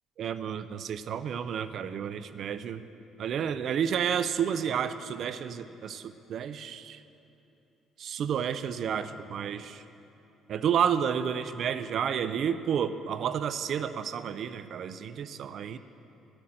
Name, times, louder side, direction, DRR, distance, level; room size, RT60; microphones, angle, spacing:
voice 1, 0.2-2.8 3.2-7.0 8.0-9.8 10.5-15.8, right 8 dB, 55° right, 13 dB, 0.3 m, -31 dB
11.5 x 5.8 x 7.5 m, 3.0 s
cardioid pair, 135°, 0 cm